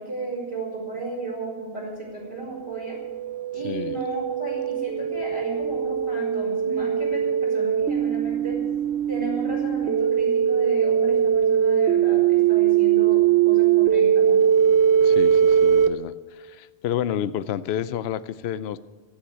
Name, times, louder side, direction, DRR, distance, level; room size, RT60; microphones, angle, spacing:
voice 1, 0.0-3.0 3.5-8.6 9.1-14.5, right 2 dB, 25° right, -6 dB, 4.5 m, -34 dB
sound 1, 2.6-15.9, right 8 dB, 75° right, 1.1 m, -21 dB
voice 2, 3.6-4.0 15.0-18.8, left 10 dB, 70° left, 15 dB, 0.8 m, -30 dB
13.0 x 10.0 x 9.5 m, 1.4 s
omnidirectional pair, 1.1 m